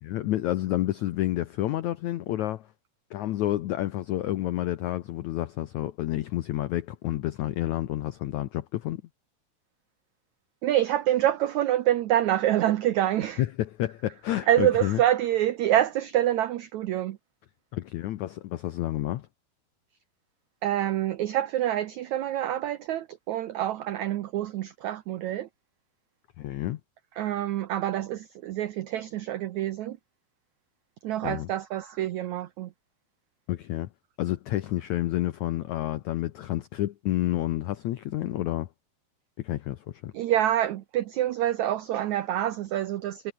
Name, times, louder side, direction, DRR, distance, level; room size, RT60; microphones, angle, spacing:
voice 1, 0.0-2.7 3.1-9.0 13.4-15.0 17.7-19.3 26.4-26.8 31.2-31.5 33.5-33.9 34.2-38.7 39.4-40.1, left 14 dB, 85° left, 1.6 m, -29 dB
voice 2, 10.6-13.4 14.5-17.2 20.6-25.5 27.2-30.0 31.0-32.7 40.1-43.3, right 12 dB, 90° right, 1.6 m, -26 dB
omnidirectional pair, 4.5 m